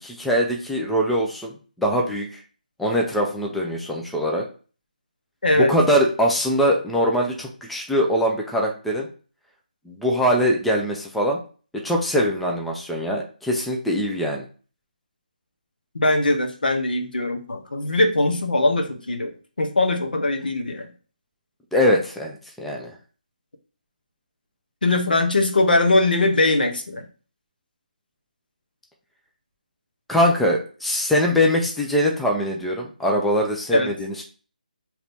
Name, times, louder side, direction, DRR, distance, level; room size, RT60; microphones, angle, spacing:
voice 1, 0.0-2.4 2.8-4.4 5.5-9.1 9.9-11.4 11.8-14.4 21.7-22.9 30.1-34.2, equal, ahead, 0 dB, 0.3 m, -22 dB
voice 2, 5.4-5.7 15.9-19.3 19.6-20.9 24.8-27.0 33.7-33.9, left 2 dB, 85° left, 4 dB, 0.8 m, -21 dB
2.9 x 2.6 x 3.4 m, 0.38 s
hypercardioid pair, 165°, 5 cm